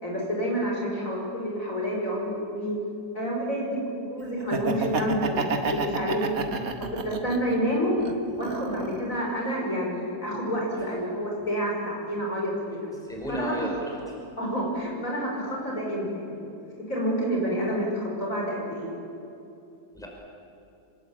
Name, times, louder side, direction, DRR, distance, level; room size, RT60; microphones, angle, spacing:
voice 1, 0.0-2.8 3.1-6.4 7.0-7.9 8.3-12.9 13.3-13.6 14.4-16.5 16.9-18.9, equal, 55° left, -2 dB, 6.2 m, -29 dB
Laughter, 4.4-7.5 8.0-9.1, right 4 dB, 65° right, 2.1 m, -30 dB
voice 2, 13.0-14.2 19.9-20.1, right 1 dB, ahead, -1 dB, 5.3 m, -33 dB
26.0 x 20.5 x 8.7 m, 2.7 s
omnidirectional pair, 1.7 m